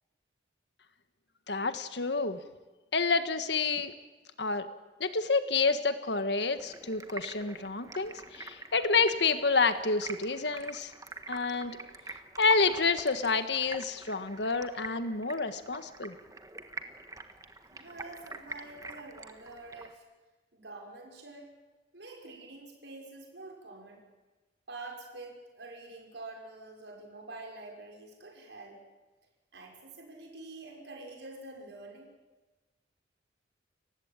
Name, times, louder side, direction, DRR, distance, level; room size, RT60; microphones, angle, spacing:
voice 1, 1.5-2.4 2.9-3.9 4.4-4.7 5.0-10.9 11.3-11.8 12.4-16.1, left 4 dB, 70° left, 10 dB, 1.6 m, -29 dB
Stream, 6.5-19.9, right 3 dB, 20° right, 1.5 m, -46 dB
voice 2, 17.7-20.0 20.5-21.5 21.9-24.0 24.7-28.8 29.5-32.1, right 2 dB, 80° right, 0 dB, 5.9 m, -46 dB
29.5 x 16.0 x 9.0 m, 1.2 s
head